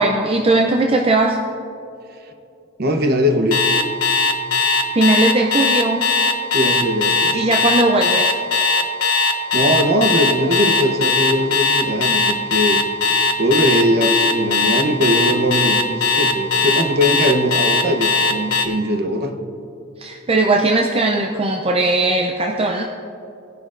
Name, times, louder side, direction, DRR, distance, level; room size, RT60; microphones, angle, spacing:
voice 1, 0.0-1.4 4.9-6.1 7.3-8.4 20.0-22.8, right 2 dB, 25° right, 1 dB, 0.5 m, -18 dB
voice 2, 2.8-3.7 6.5-7.5 9.5-12.8 13.4-19.4, equal, 45° right, 5 dB, 0.9 m, -20 dB
Alarm, 3.5-18.7, left 4 dB, 75° left, 1.1 m, -18 dB
19.0 x 10.5 x 2.6 m, 2.8 s
head